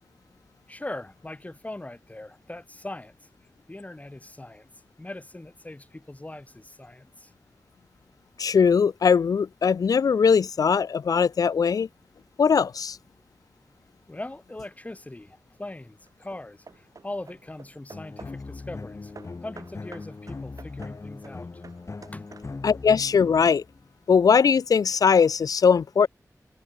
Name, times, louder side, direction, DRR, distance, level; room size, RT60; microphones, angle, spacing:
voice 1, 0.7-3.2 3.7-4.7 5.0-7.3 14.1-19.1 19.4-21.5 22.1-22.3, left 2 dB, 25° left, 3.5 m, -40 dB
voice 2, 8.4-11.9 12.4-13.0 22.6-23.6 24.1-26.1, left 6 dB, 80° left, 0.4 m, -20 dB
Hammer / Wood, 14.9-15.4 16.1-18.5 19.1-22.8, right 4 dB, 65° right, 7.0 m, -50 dB
sound 1, 17.9-23.9, left 3 dB, 50° left, 6.8 m, -40 dB
wide cardioid pair, 80°, 6 cm